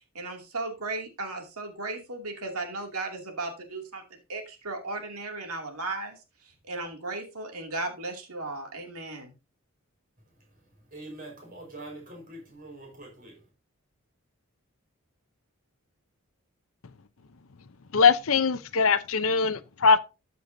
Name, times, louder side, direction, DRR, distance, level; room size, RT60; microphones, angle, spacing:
voice 1, 0.1-9.3, right 2 dB, 85° right, 2.6 m, -36 dB
voice 2, 10.3-13.5, right 2 dB, 40° right, 4.7 m, -45 dB
voice 3, 17.9-20.0, left 5 dB, 70° left, 0.7 m, -21 dB
13.0 x 6.8 x 2.7 m
head